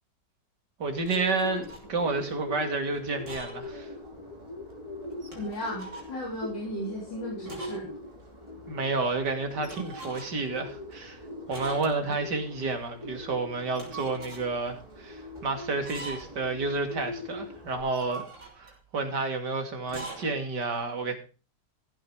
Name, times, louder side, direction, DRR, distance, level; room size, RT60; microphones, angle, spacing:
Bird, 0.8-17.8, left 2 dB, 15° right, 3.9 m, -42 dB
voice 1, 0.8-3.9 8.7-11.2 11.5-18.2 18.6-21.2, right 3 dB, 70° right, 6 dB, 3.0 m, -30 dB
sound 1, 1.0-1.9 3.1-3.7 4.1-4.2 5.1-6.1 7.5-7.9 8.2-8.3 9.6-10.5 11.5-12.2 13.6-14.5 15.7-16.5 17.8-18.8 19.8-20.3, right 3 dB, 40° right, 4.7 m, -43 dB
voice 2, 5.4-7.9, equal, 80° left, -1 dB, 4.1 m, -35 dB
15.0 x 9.0 x 4.8 m, 0.34 s
omnidirectional pair, 1.9 m